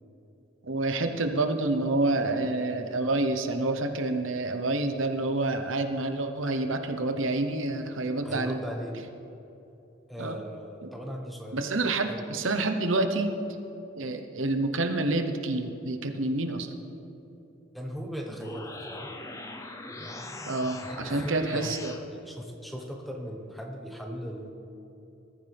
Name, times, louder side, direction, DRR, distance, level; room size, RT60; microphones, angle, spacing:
voice 1, 0.6-8.6 10.2-10.4 10.8-10.9 11.5-13.3 14.0-16.7 20.5-21.9, right 2 dB, 85° right, 6 dB, 1.1 m, -28 dB
voice 2, 8.2-9.0 10.1-11.7 12.1-12.2 17.7-19.1 21.0-24.5, equal, ahead, 1 dB, 1.3 m, -38 dB
sound 1, 18.2-22.0, left 2 dB, 15° left, 0.8 m, -41 dB
20.5 x 14.0 x 3.5 m, 2.9 s
head